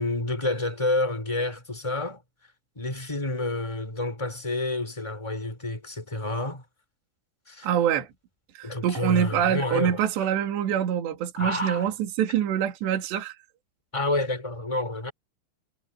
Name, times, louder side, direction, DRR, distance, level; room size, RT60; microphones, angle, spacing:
voice 1, 0.0-2.2 2.7-6.6 7.5-7.7 8.6-10.1 11.3-11.9 13.9-15.1, left 2 dB, 5° left, 5.2 m, -29 dB
voice 2, 7.6-8.1 8.6-13.4, right 9 dB, 65° right, 4.6 m, -25 dB
omnidirectional pair, 5.5 m